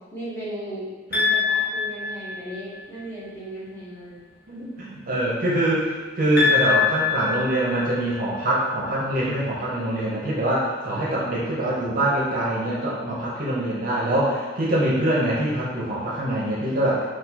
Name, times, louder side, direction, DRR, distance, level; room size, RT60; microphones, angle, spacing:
voice 1, 0.1-4.2, right 1 dB, 10° left, -9 dB, 0.9 m, -36 dB
sound 1, 1.1-2.8 6.4-8.4, left 6 dB, 50° left, 0.8 m, -24 dB
voice 2, 4.5-17.0, right 1 dB, 45° right, -6 dB, 0.7 m, -24 dB
4.1 x 2.4 x 2.8 m, 1.4 s
head